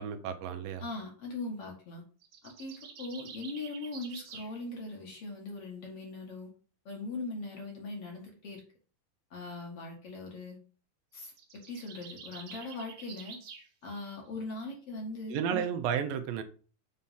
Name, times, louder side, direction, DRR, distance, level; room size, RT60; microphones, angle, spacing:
voice 1, 0.0-0.8 15.3-16.4, right 8 dB, 80° right, 2.5 m, -32 dB
voice 2, 0.8-2.0 2.4-6.5 6.9-8.6 9.3-10.6 11.1-13.4 13.8-15.6, left 2 dB, 50° left, 2.2 m, -40 dB
sound 1, 2.2-4.5 11.1-13.7, right 6 dB, 50° right, 2.0 m, -48 dB
7.4 x 4.3 x 5.6 m
omnidirectional pair, 4.0 m